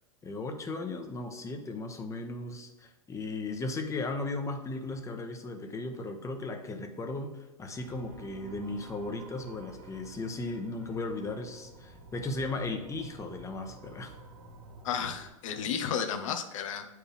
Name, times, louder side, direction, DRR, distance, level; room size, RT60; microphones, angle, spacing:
voice 1, 0.2-14.1, left 2 dB, 15° left, 5 dB, 1.0 m, -36 dB
sound 1, 7.7-15.3, right 2 dB, 75° right, 2.0 m, -50 dB
voice 2, 14.8-16.9, left 7 dB, 70° left, 7 dB, 1.0 m, -32 dB
8.7 x 4.7 x 3.6 m, 1.1 s
hypercardioid pair, 110°, 17 cm